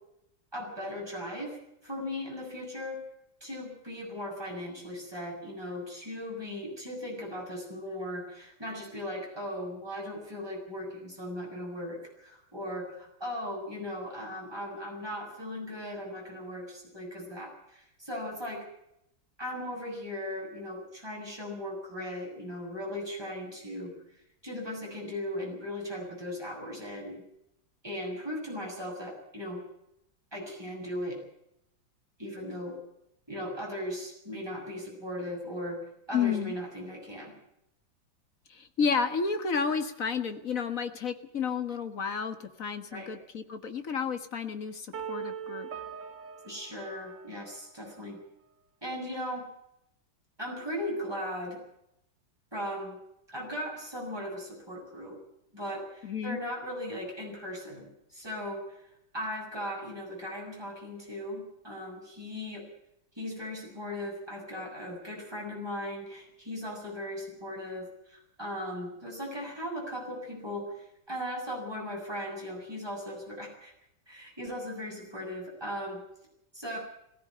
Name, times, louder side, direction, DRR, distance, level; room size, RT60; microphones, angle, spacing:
voice 1, 0.5-1.6 1.8-3.0 3.4-18.6 19.4-23.9 24.4-27.2 27.8-29.6 30.3-31.2 32.2-32.7 33.3-37.3 42.9-43.1 46.4-48.2 48.8-49.4 50.4-51.6 52.5-53.0 53.3-55.2 55.5-58.8 59.1-62.6 63.2-73.7 74.1-76.0 76.5-76.8, left 1 dB, 10° right, -1 dB, 7.9 m, -38 dB
voice 2, 36.1-36.6 38.5-45.7 56.0-56.4, left 6 dB, 45° left, 8 dB, 1.9 m, -31 dB
sound 1, 44.9-47.9, right 8 dB, 45° right, 1.5 m, -41 dB
18.5 x 17.0 x 8.8 m, 0.79 s
omnidirectional pair, 2.1 m